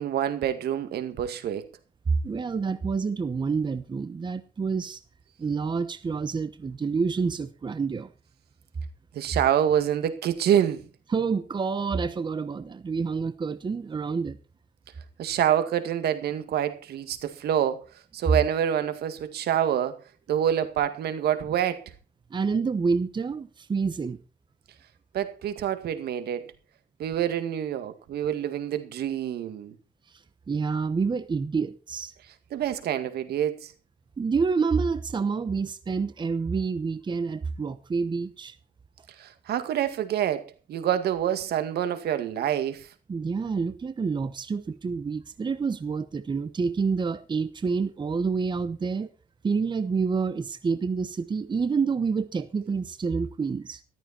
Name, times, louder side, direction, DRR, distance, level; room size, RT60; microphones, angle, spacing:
voice 1, 0.0-1.7 9.1-10.9 15.2-17.9 18.1-20.0 20.3-21.8 25.1-26.5 27.0-29.7 32.5-33.7 39.2-42.9, right 10 dB, 80° right, 2.1 m, -27 dB
voice 2, 2.2-5.0 5.4-8.1 11.1-14.4 22.3-24.2 30.5-32.1 34.2-38.6 43.1-49.1 49.4-53.8, right 5 dB, 30° right, 1.0 m, -28 dB
14.0 x 13.5 x 4.4 m
cardioid pair, 115°, 16 cm